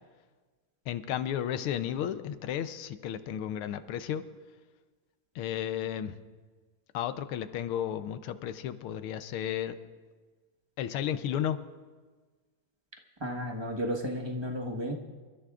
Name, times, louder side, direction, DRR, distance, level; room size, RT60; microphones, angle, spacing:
voice 1, 0.9-4.2 5.4-6.1 6.9-9.8 10.8-11.6, left 10 dB, 85° left, 11 dB, 1.6 m, -33 dB
voice 2, 13.2-15.0, equal, 20° right, 1 dB, 0.9 m, -33 dB
28.5 x 14.0 x 2.4 m, 1.4 s
omnidirectional pair, 2.3 m